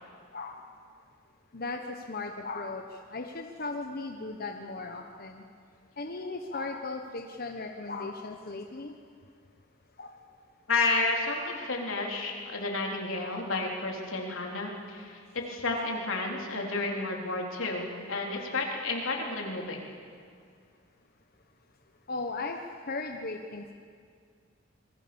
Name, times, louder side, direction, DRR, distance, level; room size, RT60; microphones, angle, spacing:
voice 1, 2.1-2.8 3.1-5.4 6.0-8.9 10.0-10.1 22.1-22.6 22.9-23.7, left 3 dB, 50° left, 4 dB, 1.2 m, -37 dB
voice 2, 10.7-19.8, left 3 dB, 90° left, 0 dB, 3.9 m, -31 dB
27.0 x 21.5 x 7.1 m, 2.1 s
head